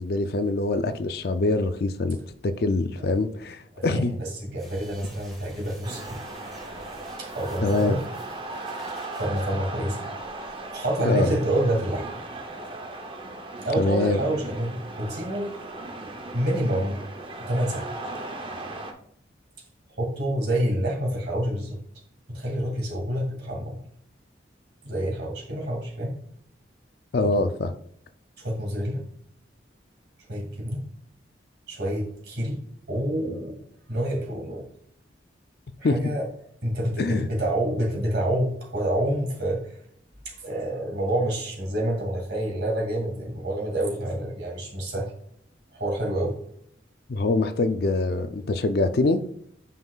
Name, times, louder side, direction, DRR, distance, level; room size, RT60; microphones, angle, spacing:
voice 1, 0.0-2.2 2.4-4.1 7.6-8.0 11.0-11.3 13.8-14.2 27.1-27.7 35.8-36.0 37.0-37.3 47.1-49.2, left 2 dB, 55° left, 0.4 m, -24 dB
voice 2, 3.7-6.2 7.2-8.0 9.1-10.1 10.4-12.1 13.6-15.7 16.3-17.0 17.5-17.9 20.0-21.8 22.3-23.8 24.8-26.1 27.2-27.5 28.4-29.0 30.3-30.8 31.7-32.6 32.9-33.5 33.9-34.6 35.8-36.3 36.6-39.6 40.2-45.1 45.7-46.3, right 1 dB, 65° right, 2.4 m, -27 dB
sound 1, 4.5-9.4, equal, ahead, 1.9 m, -48 dB
sound 2, 5.8-18.9, right 2 dB, 25° right, 0.7 m, -37 dB
9.1 x 5.5 x 2.4 m
head